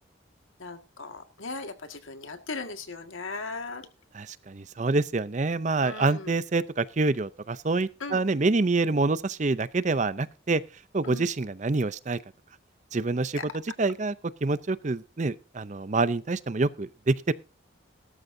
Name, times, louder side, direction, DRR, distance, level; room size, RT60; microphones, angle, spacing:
voice 1, 0.6-3.8 5.8-6.3 8.0-8.2 11.0-11.3 13.4-13.5, left 3 dB, 85° left, 1.9 m, -38 dB
voice 2, 4.1-10.6 10.9-12.2 12.9-14.1 14.4-17.3, right 3 dB, 35° right, 0.5 m, -26 dB
17.0 x 13.0 x 2.7 m
head